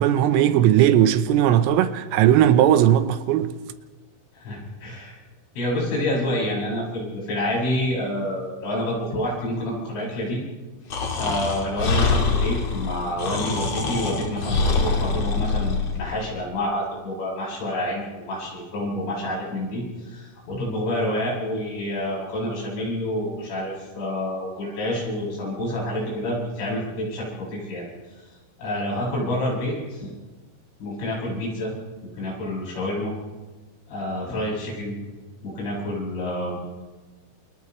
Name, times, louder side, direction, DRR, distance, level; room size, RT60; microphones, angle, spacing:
voice 1, 0.0-3.5, right 11 dB, 90° right, 3.6 m, -18 dB
voice 2, 4.3-5.2 5.6-10.4 11.2-27.9 28.6-30.1 30.8-31.7 32.1-33.1 33.9-34.9 35.4-36.7, left 1 dB, 75° left, 10.0 m, -28 dB
Breathing, 10.9-16.0, left 4 dB, 45° left, 2.5 m, -24 dB
29.0 x 28.5 x 3.3 m
omnidirectional pair, 5.6 m